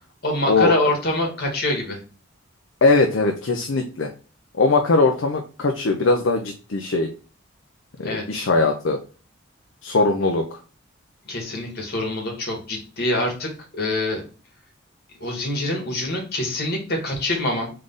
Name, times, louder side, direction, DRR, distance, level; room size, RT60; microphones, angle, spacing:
voice 1, 0.2-2.0 8.0-8.4 11.2-14.2 15.2-17.7, left 1 dB, 50° left, 1 dB, 1.8 m, -25 dB
voice 2, 2.8-4.1 4.5-7.1 8.0-9.0 9.8-10.6, left 3 dB, 65° left, 3 dB, 0.6 m, -20 dB
3.7 x 3.3 x 3.9 m, 0.36 s
head